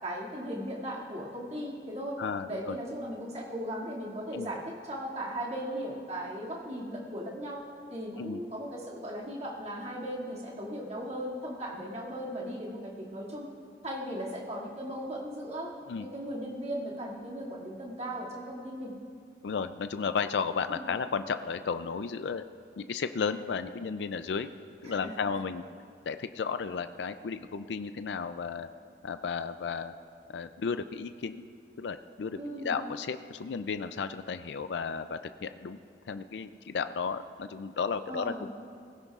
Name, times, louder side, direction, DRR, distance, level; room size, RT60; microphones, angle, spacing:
voice 1, 0.0-2.2 2.5-7.6 7.9-13.5 13.8-15.7 16.0-18.9 20.7-20.9 24.8-25.2 32.4-32.7 38.1-38.5, equal, 40° right, -5 dB, 2.3 m, -37 dB
voice 2, 2.2-2.8 4.3-4.5 8.2-8.4 15.9-16.1 19.4-22.4 22.8-24.5 24.8-25.6 26.1-28.7 29.0-29.9 30.3-31.5 31.8-35.8 36.1-38.5, left 5 dB, 85° left, 10 dB, 0.4 m, -33 dB
19.0 x 16.0 x 2.4 m, 2.3 s
head